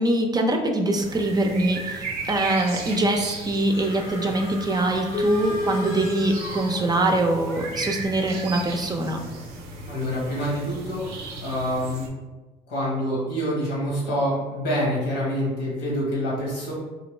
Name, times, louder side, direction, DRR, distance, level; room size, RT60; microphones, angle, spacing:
voice 1, 0.0-9.2, right 1 dB, 25° right, 3 dB, 0.5 m, -23 dB
sound 1, 1.0-12.1, right 3 dB, 85° right, 0.6 m, -36 dB
sound 2, 3.6-7.3, left 1 dB, 60° left, 0.8 m, -38 dB
sound 3, 5.1-7.7, left 1 dB, 30° left, 0.4 m, -30 dB
voice 2, 9.9-12.1 12.7-16.7, equal, 90° left, -5 dB, 1.3 m, -26 dB
3.0 x 2.5 x 3.1 m, 1.2 s
supercardioid pair, 70°, 17 cm